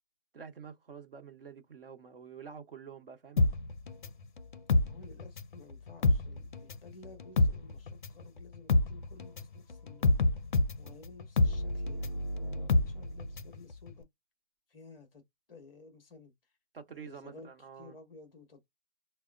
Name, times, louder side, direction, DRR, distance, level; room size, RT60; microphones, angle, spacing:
voice 1, 0.3-3.4 16.7-18.0, right 6 dB, 55° right, 1.1 m, -48 dB
sound 1, 3.4-5.6 5.9-13.6 13.9-14.0, left 2 dB, 45° left, 0.5 m, -28 dB
voice 2, 4.9-10.2 10.8-14.0 14.7-15.2 15.5-16.3 16.9-17.5 17.8-18.6, left 3 dB, 5° left, 0.7 m, -54 dB
4.6 x 2.1 x 2.3 m
hypercardioid pair, 165°, 33 cm